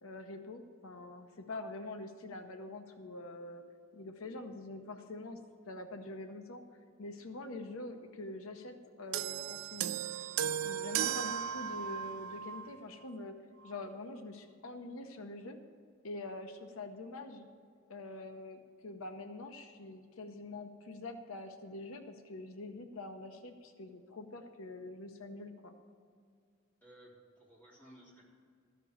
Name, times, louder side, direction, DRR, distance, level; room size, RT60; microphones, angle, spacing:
voice 1, 0.0-3.6 3.9-5.4 5.7-6.6 7.0-10.0 10.6-13.4 13.6-15.6 16.0-17.5 17.9-25.7, left 2 dB, 85° left, 7 dB, 0.8 m, -45 dB
sound 1, 9.1-12.7 13.6-13.8, right 9 dB, 85° right, 0.3 m, -36 dB
voice 2, 26.8-28.3, right 1 dB, 10° left, -6 dB, 3.3 m, -57 dB
13.5 x 5.3 x 8.4 m, 2.2 s
head